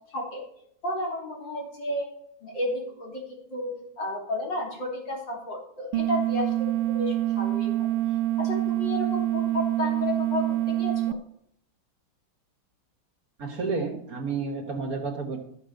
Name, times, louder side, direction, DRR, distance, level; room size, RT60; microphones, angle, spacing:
voice 1, 0.1-0.4 0.8-2.1 2.4-3.2 3.5-7.9 8.4-11.2, left 1 dB, 65° left, -1 dB, 3.6 m, -32 dB
sound 1, 5.9-11.1, right 14 dB, 85° right, 1.5 m, -26 dB
voice 2, 13.4-15.4, right 4 dB, 50° right, 5 dB, 1.6 m, -30 dB
12.0 x 7.4 x 6.4 m, 0.72 s
omnidirectional pair, 2.2 m